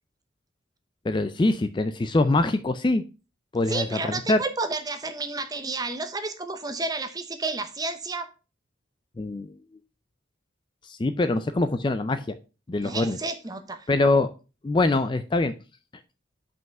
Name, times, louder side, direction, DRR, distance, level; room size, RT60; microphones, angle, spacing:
voice 1, 1.0-3.0 3.5-4.4 9.2-9.5 10.8-12.3 12.7-13.2 13.9-14.3 14.6-15.5, left 2 dB, 25° left, 0.4 m, -23 dB
voice 2, 3.7-8.3 12.8-13.9, right 3 dB, 20° right, 0.8 m, -31 dB
5.8 x 5.4 x 5.3 m
head